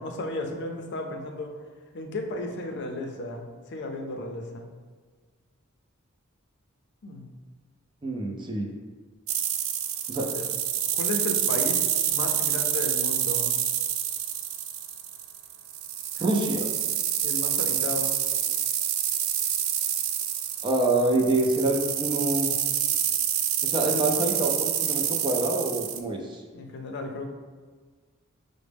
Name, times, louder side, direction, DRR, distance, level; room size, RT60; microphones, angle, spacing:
voice 1, 0.0-1.5 1.9-4.6 7.0-7.3 10.1-10.4 10.9-13.5 17.2-18.2 26.5-27.3, left 2 dB, 55° left, 3 dB, 0.5 m, -34 dB
voice 2, 8.0-8.7 10.1-10.3 16.2-16.6 20.6-22.5 23.6-26.4, right 2 dB, 25° right, 1 dB, 0.4 m, -26 dB
sound 1, 9.3-26.0, right 10 dB, 85° right, 0.3 m, -27 dB
6.0 x 2.1 x 3.4 m, 1.5 s
head